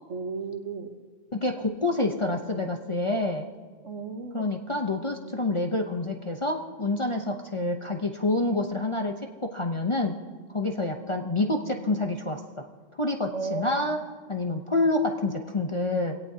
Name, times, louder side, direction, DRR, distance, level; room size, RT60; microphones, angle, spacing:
voice 1, 0.1-0.9 3.8-4.6 7.6-7.7 10.7-10.9 13.3-13.9, right 4 dB, 65° right, 6 dB, 1.5 m, -35 dB
voice 2, 1.3-3.5 4.3-10.2 10.5-12.7 13.0-14.0 14.3-16.2, left 2 dB, 30° left, 2 dB, 0.7 m, -27 dB
23.0 x 17.5 x 2.8 m, 1.5 s
omnidirectional pair, 1.4 m